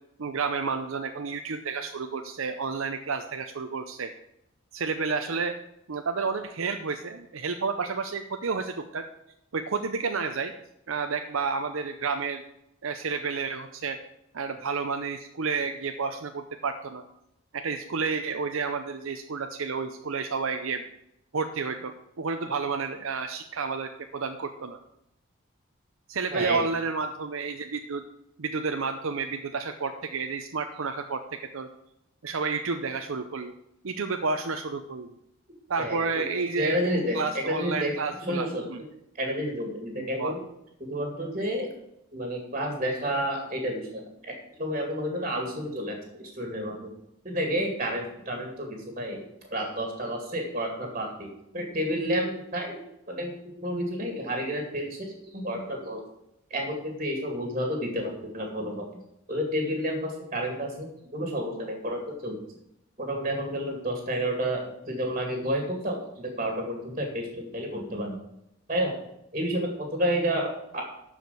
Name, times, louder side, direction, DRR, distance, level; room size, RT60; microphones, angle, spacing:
voice 1, 0.2-4.1 4.7-5.5 5.9-9.0 9.5-10.5 10.9-12.4 12.8-14.0 14.3-17.0 17.5-20.8 21.3-24.8 26.1-28.0 28.4-31.2 31.5-31.7 32.2-33.5 33.8-35.1 35.7-36.8 37.1-38.8 40.0-40.4, right 4 dB, 70° right, 6 dB, 0.6 m, -30 dB
voice 2, 26.3-26.6 35.8-36.3 36.6-37.9 38.3-38.6 39.2-40.4 40.8-41.7 42.1-44.3 44.6-46.9 47.2-49.2 49.5-51.3 51.5-52.8 53.1-53.3 53.6-56.0 56.5-58.9 59.3-62.4 63.0-68.1 68.7-68.9 69.3-70.8, equal, 30° right, 2 dB, 2.3 m, -30 dB
12.5 x 5.0 x 6.8 m, 0.82 s
head